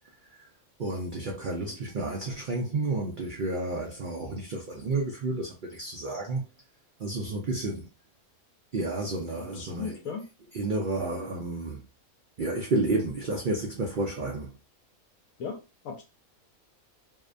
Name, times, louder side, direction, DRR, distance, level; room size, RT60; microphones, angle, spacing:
voice 1, 0.8-6.4 7.0-7.9 8.7-10.0 10.5-11.8 12.4-14.6, right 2 dB, 85° right, 0.4 m, -31 dB
voice 2, 9.4-10.2 15.4-16.0, left 6 dB, 80° left, 1.0 m, -37 dB
2.7 x 2.1 x 2.5 m
omnidirectional pair, 1.5 m